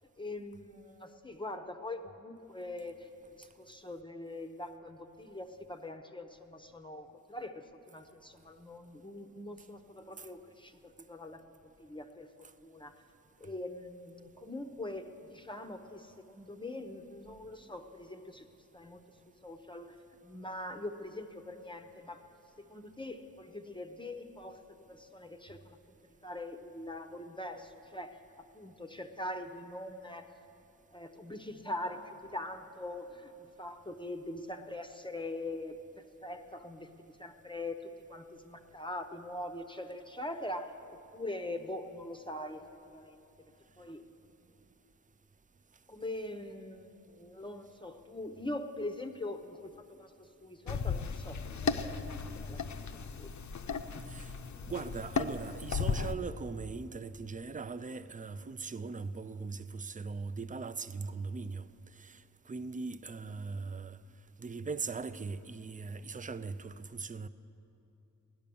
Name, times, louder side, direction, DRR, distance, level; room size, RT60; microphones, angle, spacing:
voice 1, 0.2-12.9 13.4-18.5 18.7-19.0 19.4-20.0 20.2-22.2 22.6-24.6 24.9-25.8 26.2-28.2 28.5-30.3 30.9-42.6 42.9-43.2 43.8-44.0 45.9-49.7 50.0-52.0 52.3-52.7 52.9-53.3, left 1 dB, 15° left, 0.7 m, -43 dB
sound 1, 50.7-56.1, left 5 dB, 55° left, 0.6 m, -35 dB
voice 2, 54.1-54.4 54.7-61.7 62.0-64.0 64.4-67.3, right 4 dB, 25° right, 0.4 m, -40 dB
17.0 x 10.5 x 6.9 m
wide cardioid pair, 120°, 34 cm